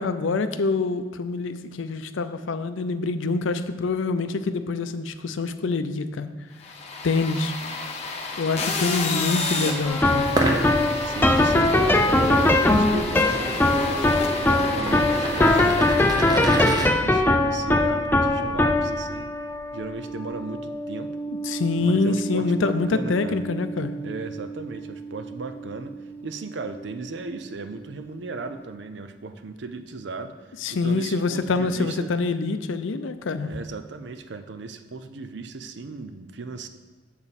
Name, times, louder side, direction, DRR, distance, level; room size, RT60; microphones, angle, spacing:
voice 1, 0.0-6.3 7.0-7.5 8.4-10.4 21.3-24.0 30.6-33.5, left 3 dB, 85° left, 11 dB, 0.5 m, -25 dB
sound 1, 6.6-16.8, left 3 dB, 35° left, 0.8 m, -32 dB
sound 2, 9.9-27.1, left 1 dB, 10° left, 0.3 m, -23 dB
sound 3, 10.2-16.9, right 1 dB, 20° right, 0.7 m, -29 dB
voice 2, 11.0-13.8 14.4-19.3 19.7-21.1 21.8-23.4 24.0-25.9 26.2-30.4 30.7-32.1 33.4-36.7, right 3 dB, 65° right, 9 dB, 0.5 m, -36 dB
7.1 x 6.9 x 4.1 m, 1.3 s
head